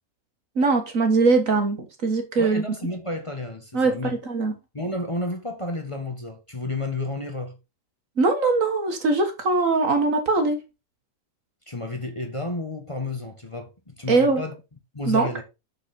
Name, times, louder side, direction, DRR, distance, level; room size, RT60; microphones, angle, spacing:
voice 1, 0.6-2.6 3.7-3.9 4.2-4.5 8.2-10.6 14.1-14.4 15.1-15.3, right 3 dB, 60° right, 2.0 m, -21 dB
voice 2, 2.4-4.2 4.7-7.6 11.7-14.5 14.9-15.4, left 2 dB, 20° left, 1.3 m, -31 dB
6.6 x 6.4 x 4.3 m
omnidirectional pair, 1.6 m